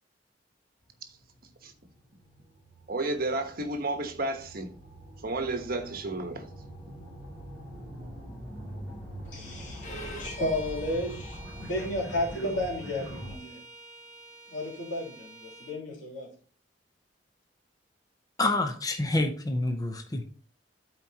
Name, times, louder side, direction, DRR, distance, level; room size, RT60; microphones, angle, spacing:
sound 1, 0.9-13.4, equal, 10° right, 4.2 m, -44 dB
voice 1, 2.9-4.7 5.2-6.5, right 2 dB, 55° right, 1.1 m, -32 dB
voice 2, 9.2-13.6 14.5-16.3, left 1 dB, 85° left, 3.1 m, -33 dB
Bowed string instrument, 9.8-15.8, right 1 dB, 40° left, 1.8 m, -46 dB
voice 3, 18.4-20.2, left 2 dB, 20° left, 0.7 m, -27 dB
12.5 x 4.5 x 2.9 m
head